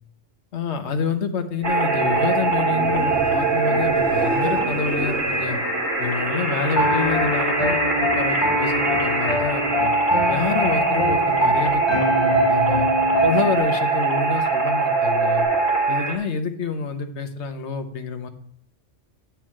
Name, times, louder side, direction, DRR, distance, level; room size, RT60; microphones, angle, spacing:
voice 1, 0.5-5.6 6.0-9.9 10.3-12.9 13.2-15.5 15.9-18.3, left 5 dB, 65° left, 8 dB, 1.2 m, -27 dB
sound 1, 1.6-16.2, right 3 dB, 90° right, 2.1 m, -22 dB
sound 2, 1.7-7.4 7.8-8.4 15.4-15.5, right 2 dB, 5° right, 1.9 m, -35 dB
Piano, 6.7-13.6, left 1 dB, 35° left, 1.3 m, -24 dB
9.0 x 4.5 x 7.5 m, 0.65 s
omnidirectional pair, 1.3 m